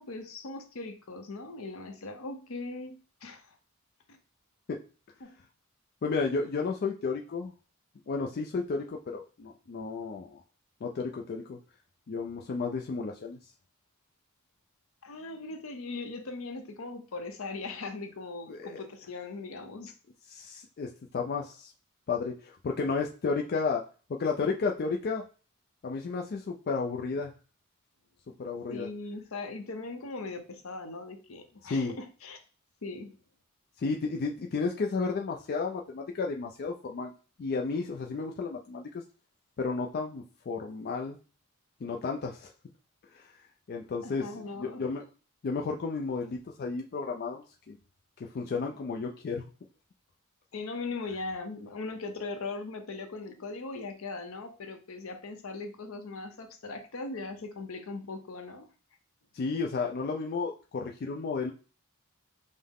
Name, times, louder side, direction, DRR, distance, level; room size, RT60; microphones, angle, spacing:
voice 1, 0.0-3.5 5.2-5.3 15.0-19.9 28.7-32.4 32.8-33.1 44.0-44.9 50.5-58.7, left 3 dB, 75° left, 6 dB, 0.7 m, -39 dB
voice 2, 6.0-7.5 8.1-10.4 10.8-11.6 12.1-13.4 18.5-18.8 20.3-21.7 22.1-23.8 24.1-25.2 25.8-27.3 28.4-28.9 31.6-31.9 33.8-37.1 37.4-38.9 39.6-41.2 41.8-42.5 43.1-43.3 43.7-45.1 45.4-47.8 48.2-49.4 59.3-61.5, left 4 dB, 45° left, 1 dB, 0.3 m, -32 dB
5.5 x 2.1 x 3.5 m, 0.36 s
head